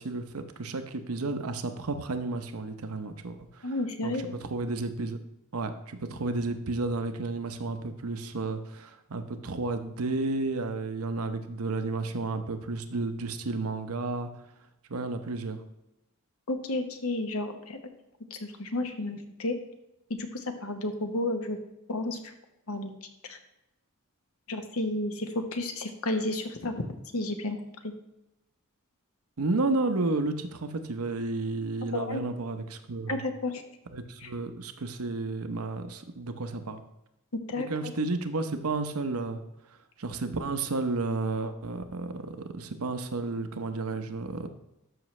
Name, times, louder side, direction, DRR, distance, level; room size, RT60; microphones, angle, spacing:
voice 1, 0.0-3.8 4.0-5.2 5.5-14.3 14.9-15.6 29.4-33.2 33.9-36.8 37.5-39.4 40.0-44.5, right 3 dB, 85° right, 8 dB, 0.8 m, -32 dB
voice 2, 3.6-4.3 16.5-17.8 18.3-19.6 20.1-21.6 21.9-22.3 22.7-22.9 23.2-23.4 24.5-26.7 27.1-27.6 27.8-27.9 31.9-32.2 33.1-33.6 34.2-34.3 37.3-37.9, left 2 dB, 75° left, 6 dB, 1.1 m, -32 dB
12.5 x 5.9 x 3.2 m, 0.91 s
head